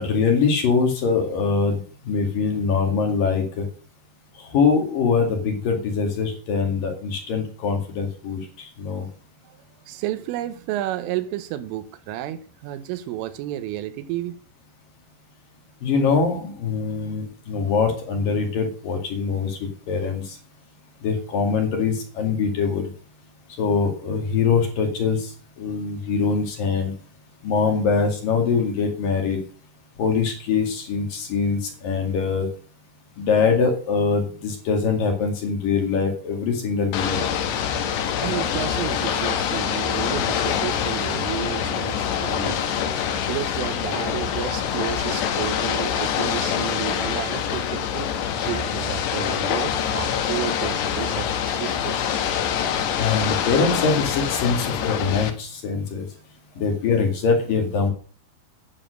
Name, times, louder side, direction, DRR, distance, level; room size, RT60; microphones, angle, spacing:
voice 1, 0.0-3.7 4.4-9.1 15.8-19.6 19.9-20.4 21.0-22.9 23.6-26.9 27.4-29.4 30.0-32.5 33.2-37.2 53.0-56.1 56.6-57.9, left 5 dB, 50° left, 3.4 m, -23 dB
voice 2, 9.9-14.4 38.1-42.7 43.2-52.2, right 13 dB, 85° right, 3.5 m, -31 dB
Ocean / Boat Water vehicle, 36.9-55.3, left 8 dB, 70° left, 3.2 m, -25 dB
10.0 x 9.0 x 6.5 m
omnidirectional pair, 5.6 m